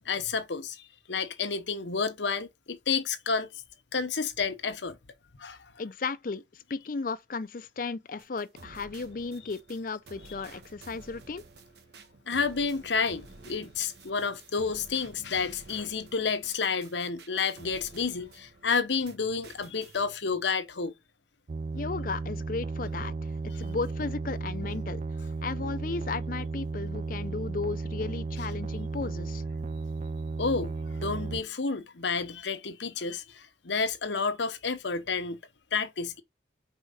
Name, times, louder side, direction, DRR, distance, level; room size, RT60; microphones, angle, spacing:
voice 1, 0.0-0.8 1.1-3.5 3.9-5.0 5.4-5.7 12.3-20.9 30.4-35.4 35.7-36.2, left 5 dB, 80° left, 1.0 m, -30 dB
voice 2, 5.8-11.4 21.7-29.4, left 4 dB, 50° left, 0.5 m, -35 dB
sound 1, 8.2-19.2 19.4-20.0, right 3 dB, 65° right, 1.2 m, -51 dB
sound 2, 21.5-31.4, right 3 dB, 40° right, 0.4 m, -34 dB
4.8 x 4.5 x 5.5 m
head